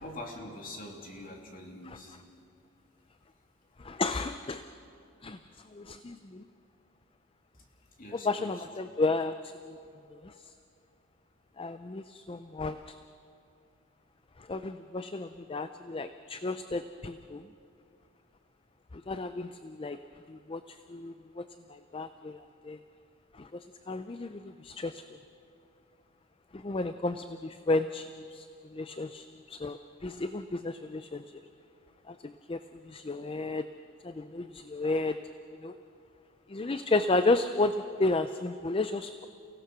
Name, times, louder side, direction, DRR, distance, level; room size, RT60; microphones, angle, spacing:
voice 1, 0.0-2.2 7.5-7.7 8.0-8.6, left 1 dB, 40° left, 1 dB, 2.8 m, -44 dB
voice 2, 3.8-4.6 5.2-5.4 5.7-6.4 8.2-9.8 10.2-10.3 11.6-12.9 14.5-17.4 18.9-20.0 20.3-21.4 21.7-22.4 22.6-22.8 23.4-25.0 26.5-28.5 28.7-31.2 32.1-32.6 32.9-33.6 34.0-35.2 35.6-35.7 36.5-37.7 38.0-39.3, left 2 dB, 25° left, 10 dB, 0.4 m, -32 dB
29.5 x 17.0 x 6.2 m, 2.5 s
head